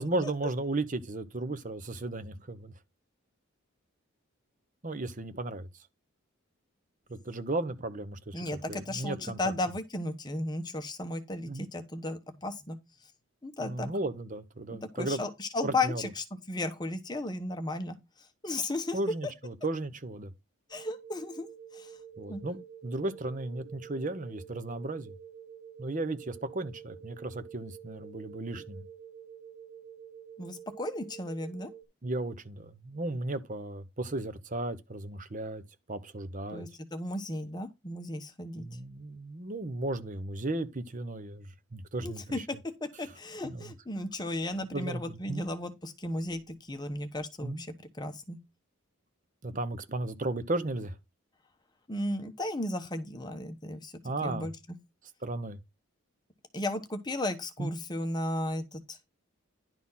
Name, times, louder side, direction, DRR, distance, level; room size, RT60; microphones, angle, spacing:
voice 1, 0.0-2.7 4.8-5.7 7.1-9.4 11.5-11.7 13.6-15.2 15.6-16.0 18.9-20.3 22.2-25.1 25.8-28.9 32.0-35.6 35.9-36.6 38.6-41.5 41.7-42.5 43.4-43.7 44.7-45.5 47.4-47.6 49.4-50.9 54.0-54.5 55.2-55.6 57.6-57.8, right 2 dB, 35° right, 0.9 m, -35 dB
voice 2, 8.3-12.8 13.4-13.9 14.7-18.0 18.4-19.0 20.7-21.5 21.7-21.9 22.3-22.4 30.4-31.7 36.5-38.6 42.0-42.4 42.8-48.4 51.9-53.9 54.2-54.5 56.5-59.0, left 2 dB, 20° left, 1.1 m, -35 dB
sound 1, 20.7-31.8, right 8 dB, 90° right, 2.7 m, -49 dB
11.0 x 4.2 x 5.7 m
head